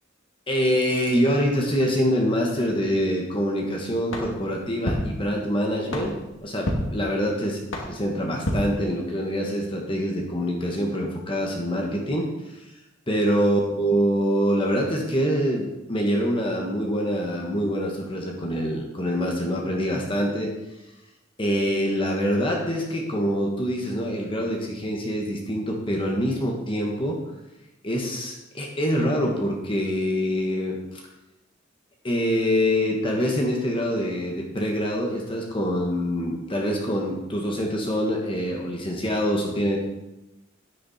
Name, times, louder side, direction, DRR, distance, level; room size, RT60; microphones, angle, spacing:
voice 1, 0.5-6.1 6.4-7.6 7.9-12.6 13.1-20.5 21.4-27.2 27.8-31.0 32.0-39.8, equal, 25° left, -1 dB, 1.5 m, -25 dB
sound 1, 4.1-9.4, left 1 dB, 70° left, 2.5 m, -32 dB
10.5 x 9.5 x 4.3 m, 0.97 s
head